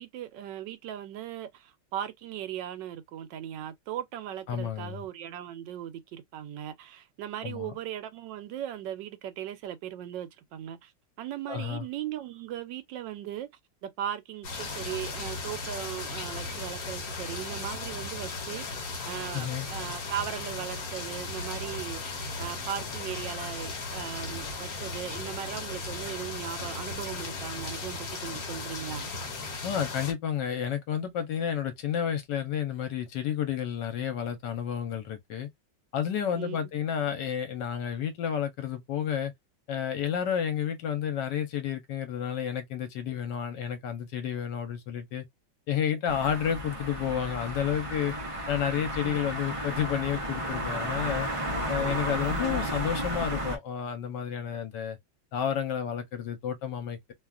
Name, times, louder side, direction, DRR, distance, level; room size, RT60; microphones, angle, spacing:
voice 1, 0.0-10.9 11.2-13.5 13.8-18.7 19.1-29.1 36.3-36.6 49.0-49.2 51.8-51.9 52.3-52.7, right 11 dB, 85° right, 1.3 m, -38 dB
voice 2, 4.5-5.1 7.4-7.7 11.5-11.9 19.3-19.7 29.6-35.5 35.9-39.3 39.7-45.3 45.7-48.1 48.5-51.3 51.7-55.0 55.3-57.1, left 9 dB, 75° left, 1.4 m, -31 dB
sound 1, 14.4-30.1, left 3 dB, 60° left, 1.4 m, -36 dB
sound 2, 46.1-53.6, equal, 50° right, 0.4 m, -33 dB
3.1 x 2.3 x 2.4 m
omnidirectional pair, 1.9 m